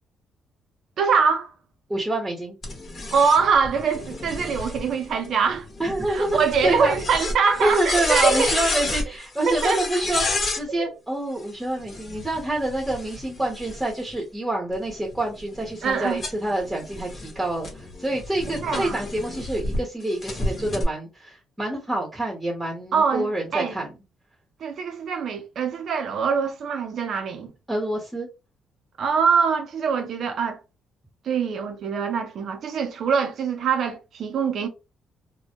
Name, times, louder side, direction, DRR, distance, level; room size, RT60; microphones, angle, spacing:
voice 1, 1.0-1.5 3.1-5.7 6.1-8.5 9.5-9.8 10.7-10.9 15.8-16.2 18.6-19.0 22.9-23.8 24.6-27.5 29.0-30.6 31.2-34.7, right 5 dB, 65° right, 0.5 m, -23 dB
voice 2, 1.9-2.6 5.8-6.9 7.6-10.2 10.5-23.9 27.7-28.3, right 1 dB, 10° right, 0.8 m, -27 dB
sound 1, 2.6-10.6 11.8-14.1 14.7-19.8 20.2-20.8, left 2 dB, 45° left, 0.9 m, -31 dB
2.1 x 2.0 x 2.8 m
cardioid pair, 90°, 0 cm